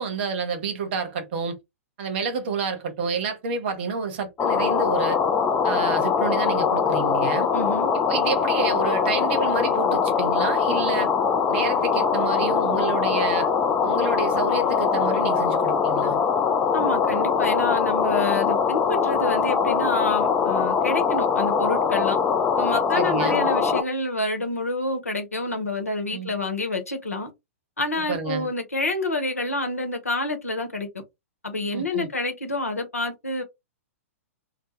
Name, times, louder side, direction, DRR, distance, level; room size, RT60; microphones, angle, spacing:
voice 1, 0.0-1.6 2.0-5.2 5.6-7.5 8.1-11.1 11.5-13.5 13.8-16.2 22.9-23.5 26.1-26.3 28.0-28.5 31.7-32.1, right 5 dB, 45° right, 0.9 m, -29 dB
sound 1, 4.4-23.8, left 6 dB, 15° left, 0.3 m, -22 dB
voice 2, 7.5-7.9 16.7-22.2 22.6-27.3 27.8-30.9 31.4-33.4, left 2 dB, 80° left, 0.8 m, -28 dB
2.2 x 2.1 x 2.9 m
figure-of-eight pair, 110°, 8 cm